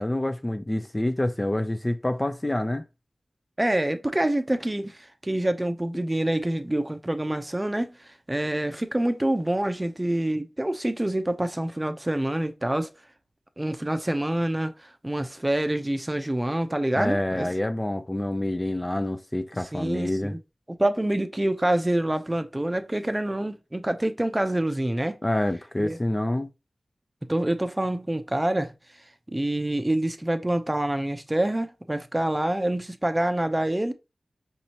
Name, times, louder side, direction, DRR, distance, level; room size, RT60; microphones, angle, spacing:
voice 1, 0.0-2.8 16.9-20.4 25.2-26.5, left 1 dB, 25° left, 0.5 m, -27 dB
voice 2, 3.6-12.9 13.6-17.5 19.7-20.4 20.7-25.2 25.8-26.0 27.2-28.7 29.3-33.9, right 1 dB, 20° right, 0.6 m, -26 dB
5.3 x 2.8 x 2.8 m
cardioid pair, 50°, 0 cm